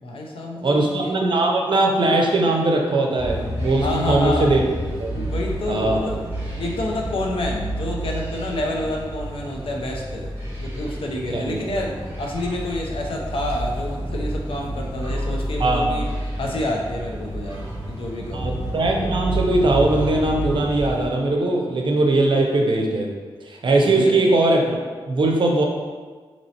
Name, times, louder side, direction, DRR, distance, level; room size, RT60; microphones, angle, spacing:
voice 1, 0.0-1.1 3.8-4.5 5.1-6.2 6.6-10.3 10.6-16.1 16.4-18.5 23.8-24.1, left 1 dB, 70° left, 0 dB, 0.6 m, -28 dB
voice 2, 0.6-4.6 5.0-5.2 5.7-6.0 11.3-11.6 15.6-15.9 18.3-23.1 23.4-24.8 25.1-25.6, right 2 dB, 60° right, 1 dB, 0.6 m, -20 dB
sound 1, 3.2-21.1, right 1 dB, 25° right, 1.3 m, -29 dB
4.1 x 2.9 x 2.8 m, 1.5 s
wide cardioid pair, 100°, 10 cm